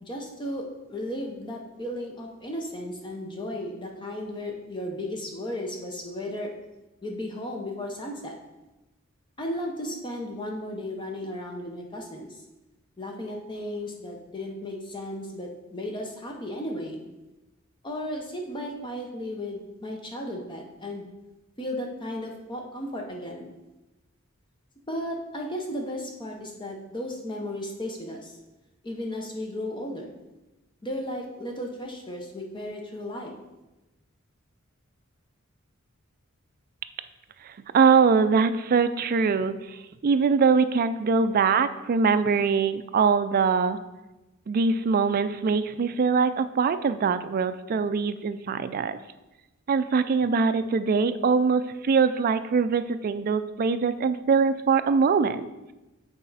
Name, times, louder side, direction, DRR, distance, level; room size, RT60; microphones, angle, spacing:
voice 1, 0.0-6.5 7.0-8.4 9.4-12.4 13.0-17.0 17.8-21.1 21.6-23.5 24.9-28.4 28.8-30.1 30.8-33.4, left 1 dB, 25° left, 1 dB, 0.7 m, -35 dB
voice 2, 37.4-43.8 44.5-49.0 49.7-55.5, right 5 dB, 45° right, 11 dB, 0.3 m, -23 dB
8.2 x 4.1 x 4.0 m, 1.0 s
head